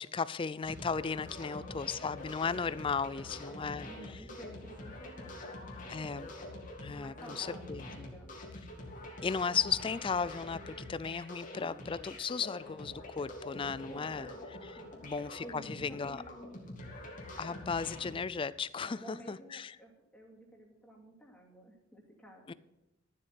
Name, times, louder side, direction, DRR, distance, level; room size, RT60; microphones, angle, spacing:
voice 1, 0.0-3.9 5.9-6.3 6.8-8.1 9.2-14.3 14.6-14.7 15.0-16.2 17.4-19.8 22.5-22.6, left 5 dB, 25° left, 17 dB, 0.4 m, -35 dB
sound 1, 0.6-18.1, left 1 dB, 45° left, 2.1 m, -46 dB
voice 2, 1.3-1.8 3.0-5.8 6.9-8.5 13.9-14.5 14.8-15.1 15.4-16.8 18.8-22.5, equal, 5° left, -1 dB, 2.5 m, -53 dB
12.0 x 7.7 x 5.8 m, 0.98 s
head